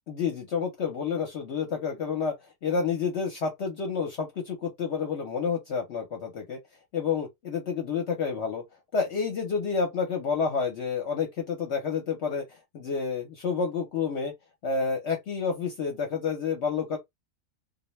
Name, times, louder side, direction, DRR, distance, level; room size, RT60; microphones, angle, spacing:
voice 1, 0.1-2.3 2.6-6.6 6.9-8.6 8.9-14.3 14.6-17.0, left 5 dB, 60° left, 0.8 m, -29 dB
2.3 x 2.1 x 3.0 m
omnidirectional pair, 1.5 m